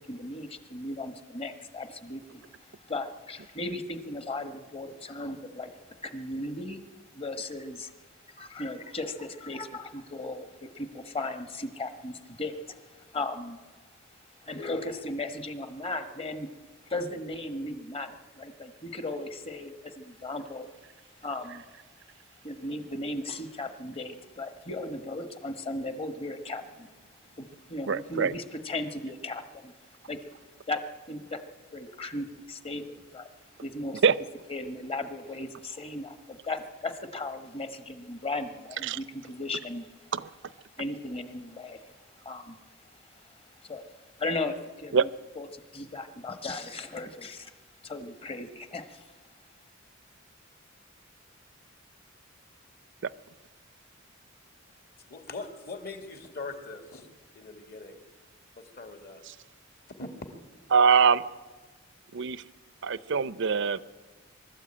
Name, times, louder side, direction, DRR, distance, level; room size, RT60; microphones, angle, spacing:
voice 1, 0.0-2.4 2.9-5.7 6.0-6.8 7.1-7.9 8.3-13.6 14.4-16.5 16.8-20.7 21.2-21.6 22.4-26.9 27.4-29.7 30.1-30.2 30.7-30.8 31.1-31.4 31.7-33.3 33.6-34.0 34.5-39.9 40.8-41.9 42.2-42.6 43.1-43.9 44.2-45.0 45.4-47.5 47.8-49.1, left 2 dB, 30° left, 8 dB, 1.4 m, -36 dB
voice 2, 27.9-28.3 34.0-34.1 38.8-39.0 40.1-40.3 44.9-45.0 60.7-61.2 62.1-62.4 62.8-63.8, right 6 dB, 65° right, 17 dB, 0.6 m, -23 dB
voice 3, 55.0-58.0 58.5-59.2 59.9-60.1, left 3 dB, 50° left, 5 dB, 2.4 m, -42 dB
23.5 x 13.0 x 8.8 m, 1.4 s
head